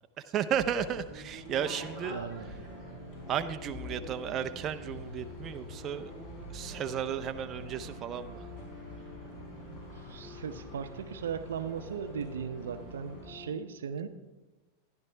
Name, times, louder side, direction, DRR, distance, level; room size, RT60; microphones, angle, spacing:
voice 1, 0.2-2.2 3.3-6.1 6.5-8.4, right 9 dB, 35° right, 8 dB, 0.5 m, -34 dB
sound 1, 0.5-13.3, left 1 dB, 45° left, 4.2 m, -46 dB
sound 2, 1.5-13.5, left 2 dB, ahead, 2.2 m, -49 dB
voice 2, 2.1-2.5 9.7-9.8 10.1-14.1, right 7 dB, 85° right, 11 dB, 0.6 m, -37 dB
12.0 x 10.5 x 3.3 m, 1.1 s
hypercardioid pair, 115°, 0 cm